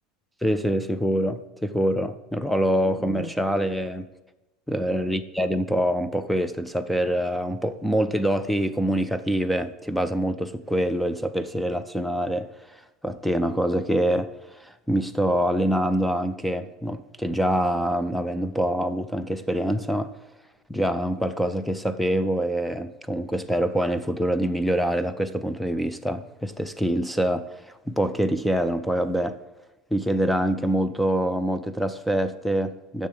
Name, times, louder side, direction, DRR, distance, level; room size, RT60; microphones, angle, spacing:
voice 1, 0.4-4.1 4.7-20.1 20.7-29.4 29.9-33.1, equal, ahead, 0.4 m, -25 dB
6.9 x 6.5 x 6.9 m
supercardioid pair, 120°, 3 cm